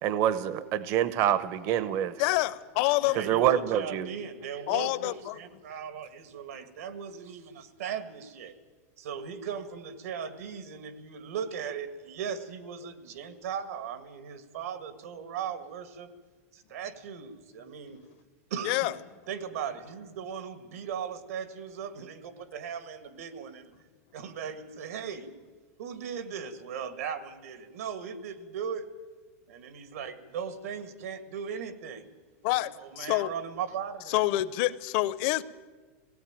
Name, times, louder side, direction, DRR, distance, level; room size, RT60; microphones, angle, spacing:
voice 1, 0.0-2.1 3.2-4.1, right 11 dB, 35° right, 0.8 m, -26 dB
voice 2, 2.2-3.2 4.7-5.4 18.6-18.9 32.4-33.3 34.1-35.4, left 17 dB, 45° left, 0.7 m, -27 dB
voice 3, 3.0-8.5 9.0-16.1 16.5-18.0 18.5-19.0 19.3-23.7 24.1-25.3 25.8-28.9 29.5-32.1 32.8-34.2, right 7 dB, 75° right, 2.0 m, -38 dB
17.5 x 17.0 x 9.0 m
supercardioid pair, 160°, 8 cm